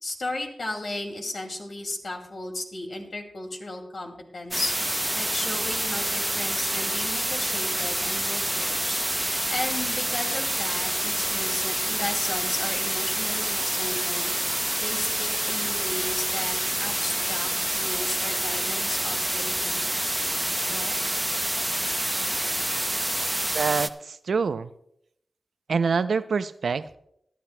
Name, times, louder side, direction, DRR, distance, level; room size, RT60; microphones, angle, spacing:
voice 1, 0.0-4.7 5.1-9.0 9.5-14.3 14.8-19.9 20.6-20.9, left 2 dB, 65° left, 3 dB, 2.3 m, -35 dB
sound 1, 4.5-23.9, right 1 dB, 10° right, 0.6 m, -27 dB
voice 2, 23.5-24.7 25.7-27.0, right 5 dB, 80° right, 14 dB, 0.4 m, -26 dB
20.5 x 11.0 x 2.2 m, 0.73 s
cardioid pair, 50°, 0 cm